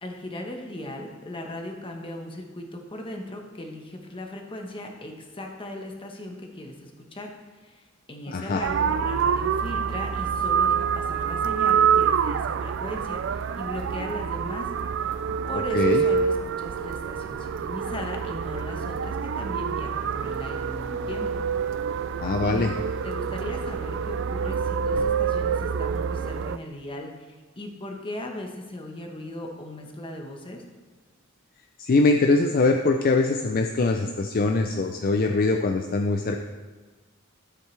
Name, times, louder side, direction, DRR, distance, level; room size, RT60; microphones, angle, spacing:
voice 1, 0.0-7.3 7.6-14.7 15.0-15.1 15.5-21.5 22.4-22.7 23.0-30.6, left 1 dB, 25° left, 2 dB, 1.1 m, -38 dB
voice 2, 8.3-8.6 15.7-16.0 22.2-22.7 31.8-36.4, left 3 dB, 45° left, 4 dB, 0.5 m, -22 dB
sound 1, 8.6-26.6, right 7 dB, 65° right, 0.3 m, -26 dB
12.5 x 7.6 x 3.3 m, 1.3 s
head